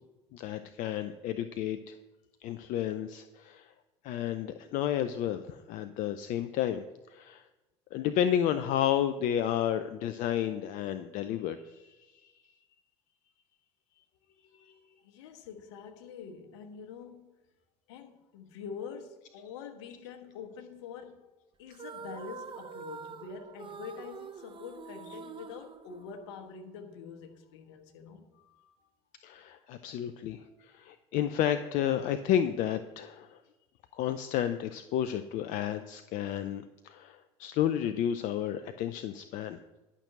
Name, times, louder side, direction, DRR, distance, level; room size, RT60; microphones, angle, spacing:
voice 1, 0.3-2.0 2.4-3.7 4.0-6.8 7.1-7.4 7.9-12.0 12.2-12.3 14.5-14.7 29.2-33.4 33.9-39.6, left 10 dB, 60° left, 0.6 m, -31 dB
voice 2, 15.0-17.4 17.9-21.3 21.6-28.8 30.2-30.6, left 6 dB, 75° left, 1.4 m, -45 dB
sound 1, 21.7-26.5, right 6 dB, 35° right, 0.9 m, -46 dB
11.5 x 6.1 x 6.6 m
hypercardioid pair, 70°, 15 cm